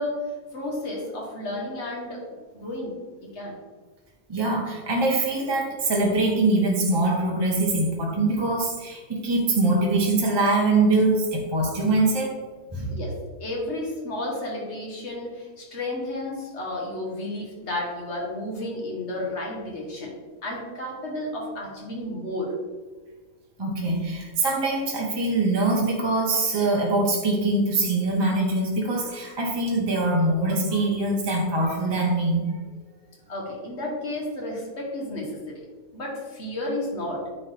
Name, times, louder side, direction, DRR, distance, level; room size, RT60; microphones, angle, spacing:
voice 1, 0.0-3.6 12.9-13.1 13.4-20.1 20.4-22.5 33.3-35.6 35.9-37.2, left 1 dB, 50° left, -2 dB, 1.9 m, -32 dB
voice 2, 4.3-12.3 12.7-13.0 23.6-32.6, right 2 dB, 20° right, -3 dB, 1.0 m, -23 dB
9.3 x 4.0 x 3.6 m, 1.4 s
omnidirectional pair, 1.5 m